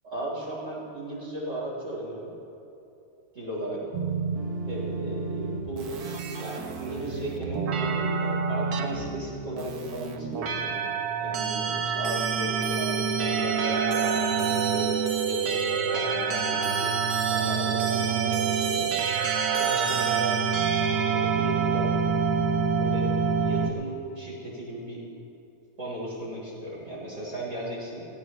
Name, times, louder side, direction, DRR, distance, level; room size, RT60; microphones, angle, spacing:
voice 1, 0.0-2.3 3.3-3.8 4.7-5.9 6.4-10.9 11.2-15.0 15.3-18.9 19.3-20.4 20.9-22.0 22.8-23.1 23.4-25.0 25.8-28.1, right 1 dB, 55° right, -6 dB, 4.5 m, -36 dB
sound 1, 3.9-23.7, right 6 dB, 80° right, 1.5 m, -27 dB
18.0 x 17.5 x 3.2 m, 2.8 s
omnidirectional pair, 1.6 m